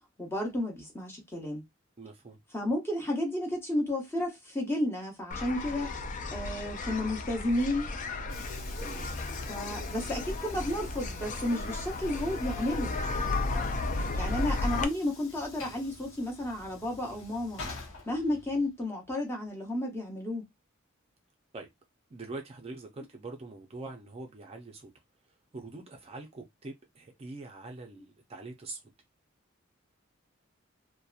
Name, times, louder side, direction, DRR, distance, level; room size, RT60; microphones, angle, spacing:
voice 1, 0.2-1.6 2.5-5.9 6.3-7.9 9.5-13.0 14.2-17.6 18.1-20.5, left 1 dB, 10° left, 0.8 m, -32 dB
voice 2, 2.0-2.4 8.8-9.1 21.5-21.7 22.1-24.9 25.5-28.8, right 2 dB, 30° right, 0.4 m, -44 dB
sound 1, 5.3-14.8, left 3 dB, 40° left, 0.4 m, -34 dB
Train / Sliding door, 7.4-18.8, left 3 dB, 85° left, 0.8 m, -48 dB
2.7 x 2.1 x 2.3 m
head